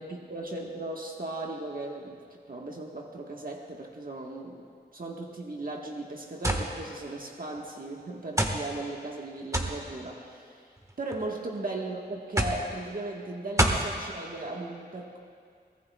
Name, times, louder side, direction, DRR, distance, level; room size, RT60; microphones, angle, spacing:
voice 1, 0.0-4.6 4.9-10.6 11.0-15.2, right 2 dB, 55° right, -1 dB, 1.4 m, -37 dB
sound 1, 6.4-6.7 7.6-7.7 8.4-8.6 9.5-9.8 10.8-11.2 12.4-12.6 13.6-13.9, right 1 dB, 20° right, 1.4 m, -26 dB
23.0 x 18.0 x 2.3 m, 2.2 s
wide cardioid pair, 75°, 17 cm